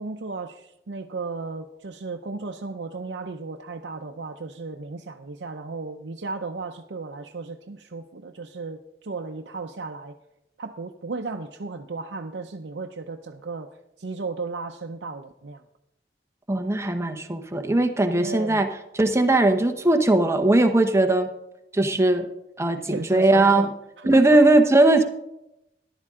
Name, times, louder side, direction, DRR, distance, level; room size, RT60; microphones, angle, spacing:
voice 1, 0.0-10.1 10.6-13.7 14.0-15.6 18.2-18.6 22.9-23.7 24.0-24.4, right 3 dB, 85° right, 2 dB, 0.7 m, -34 dB
voice 2, 16.5-18.7 18.9-21.3 21.7-22.3 22.6-23.7 24.1-25.0, right 2 dB, 15° right, 6 dB, 0.9 m, -19 dB
14.0 x 11.5 x 3.7 m, 0.87 s
head